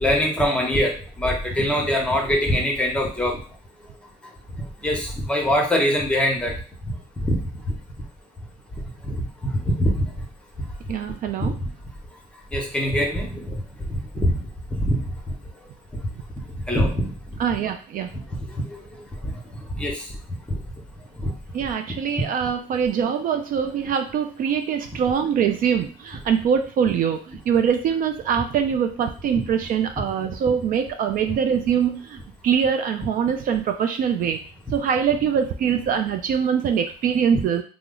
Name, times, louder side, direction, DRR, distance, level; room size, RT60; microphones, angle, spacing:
voice 1, 0.0-3.4 4.6-6.6 7.2-7.7 9.0-10.1 11.4-11.7 12.5-13.6 13.9-14.4 14.8-15.0 15.3-15.4 16.7-17.1 18.3-18.8 19.2-19.3 19.7-20.1 20.5-20.6 21.1-21.3 22.4-22.5 29.3-29.4 34.7-34.8, equal, 5° left, 0 dB, 0.9 m, -23 dB
voice 2, 10.9-11.5 17.4-18.1 21.5-34.4 34.7-37.6, right 7 dB, 55° right, 6 dB, 0.4 m, -23 dB
3.0 x 2.0 x 3.7 m, 0.39 s
cardioid pair, 110°, 17 cm